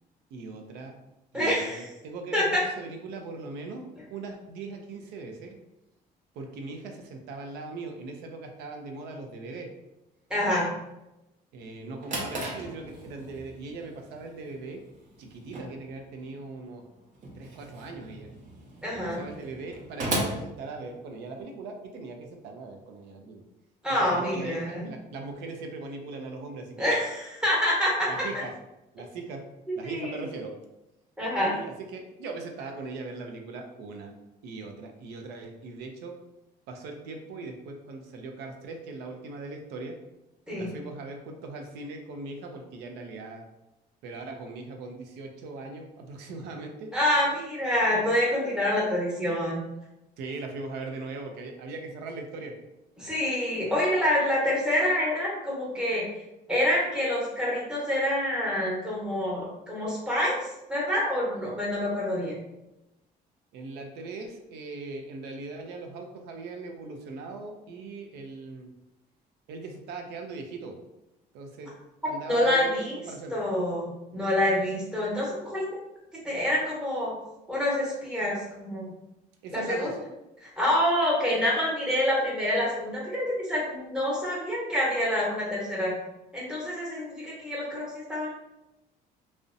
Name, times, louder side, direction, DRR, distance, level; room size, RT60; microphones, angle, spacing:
voice 1, 0.3-0.9 1.3-5.6 6.4-9.7 11.5-14.8 15.2-16.8 17.3-18.3 18.9-23.4 23.9-26.9 28.1-28.5 28.9-29.4 29.8-30.5 31.4-34.1 34.4-36.1 36.7-40.0 40.6-43.4 44.0-46.9 50.2-52.5 63.5-68.7 69.5-70.8 71.3-71.7 72.0-72.7 73.1-73.3 79.4-80.0, right 3 dB, 85° right, 3 dB, 0.4 m, -40 dB
voice 2, 1.3-1.9 2.3-2.6 10.3-10.7 18.8-19.2 23.8-24.9 26.8-28.1 29.7-30.3 31.2-31.5 40.5-40.7 46.9-49.6 53.0-56.1 56.5-62.4 72.3-73.0 73.3-75.6 76.2-77.1 77.5-78.9 79.5-79.9 80.4-86.0 86.3-88.4, left 1 dB, 5° right, -5 dB, 0.9 m, -27 dB
Drawer open or close, 11.7-21.4, right 1 dB, 45° right, 0.7 m, -37 dB
2.6 x 2.0 x 2.5 m, 0.94 s
cardioid pair, 110°, 17 cm